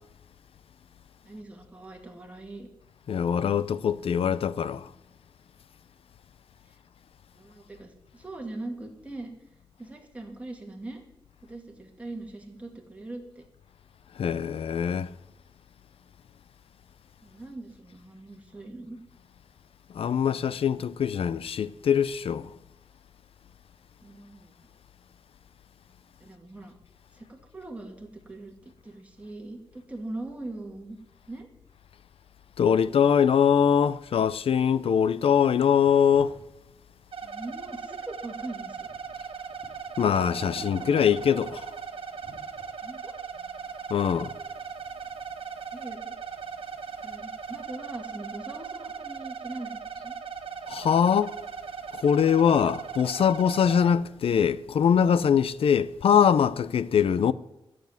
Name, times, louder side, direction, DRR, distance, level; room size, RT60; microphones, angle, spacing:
voice 1, 1.2-2.7 6.6-6.8 7.3-9.3 9.8-11.0 11.4-13.4 17.2-19.0 24.0-24.5 26.2-26.7 27.1-31.0 31.3-31.5 37.2-38.9 42.8-43.1 45.7-46.2 47.0-50.2, right 2 dB, 15° right, 2.6 m, -41 dB
voice 2, 3.1-4.9 14.2-15.1 19.9-22.5 32.6-36.3 40.0-41.7 43.9-44.3 50.7-51.4 51.9-57.3, left 8 dB, 90° left, 0.6 m, -23 dB
sound 1, 35.8-36.4 36.7-37.7 38.3-39.9 40.2-41.6 42.2-42.6, left 2 dB, 60° left, 3.8 m, -48 dB
sound 2, 37.1-53.9, right 6 dB, 75° right, 1.5 m, -38 dB
13.5 x 7.8 x 9.5 m
wide cardioid pair, 135°, 9 cm